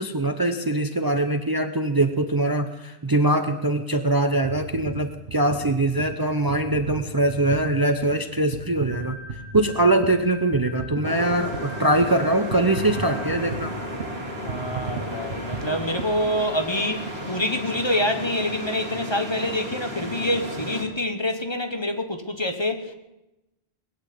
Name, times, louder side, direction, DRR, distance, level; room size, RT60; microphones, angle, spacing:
voice 1, 0.0-9.2 9.5-13.7, right 1 dB, 25° right, 0.7 m, -22 dB
sound 1, 4.4-16.8 17.4-17.5, right 4 dB, 70° right, 1.3 m, -36 dB
sound 2, 8.9-13.8, left 1 dB, 60° left, 6.9 m, -44 dB
sound 3, 11.0-20.8, equal, 90° right, 3.0 m, -34 dB
voice 2, 14.4-22.9, left 1 dB, 25° left, 1.2 m, -26 dB
20.5 x 8.2 x 8.4 m
omnidirectional pair, 1.0 m